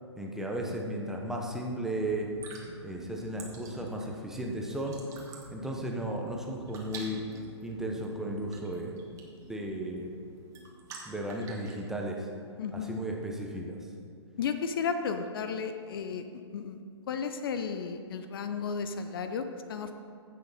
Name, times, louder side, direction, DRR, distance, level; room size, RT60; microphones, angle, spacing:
voice 1, 0.2-2.4 2.8-5.0 5.5-7.2 7.6-9.2 9.5-10.1 11.0-12.3 12.7-13.8, right 1 dB, 5° right, 0 dB, 0.9 m, -35 dB
sound 1, 1.8-11.4, right 2 dB, 45° right, 1.5 m, -52 dB
sound 2, 2.2-11.8, right 4 dB, 20° right, 1.5 m, -50 dB
voice 2, 12.6-13.0 14.4-16.3 16.5-16.8 17.1-19.9, left 6 dB, 50° left, 8 dB, 0.7 m, -33 dB
15.5 x 6.5 x 4.2 m, 2.4 s
figure-of-eight pair, 130°, 15 cm